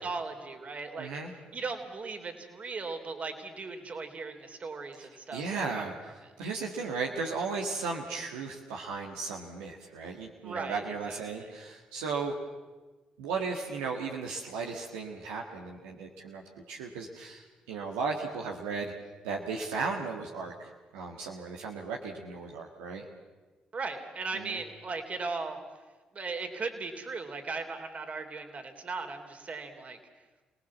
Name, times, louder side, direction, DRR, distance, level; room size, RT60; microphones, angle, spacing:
voice 1, 0.0-1.1 1.5-5.8 10.4-11.5 23.7-25.6 26.1-30.0, right 4 dB, 50° right, 6 dB, 3.4 m, -37 dB
voice 2, 1.0-1.4 5.0-12.3 13.2-18.9 19.2-23.0 24.3-24.6, right 4 dB, 85° right, 0 dB, 1.7 m, -36 dB
27.0 x 19.0 x 7.3 m, 1.2 s
hypercardioid pair, 45°, 3 cm